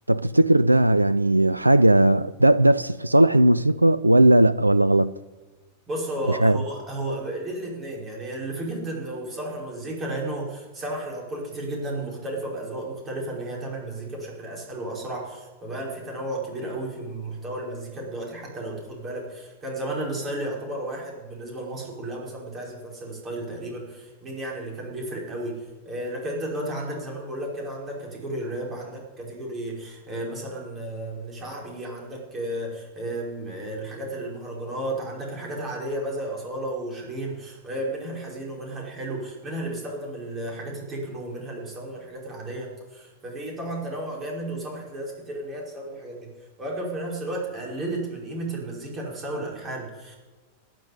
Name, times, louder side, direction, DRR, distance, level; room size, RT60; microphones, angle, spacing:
voice 1, 0.1-5.1 6.3-6.6, right 1 dB, 85° right, 0.3 m, -18 dB
voice 2, 5.9-46.3 46.6-50.2, right 1 dB, 25° right, 5.2 m, -33 dB
12.5 x 6.8 x 9.7 m
figure-of-eight pair, 90°, 0 cm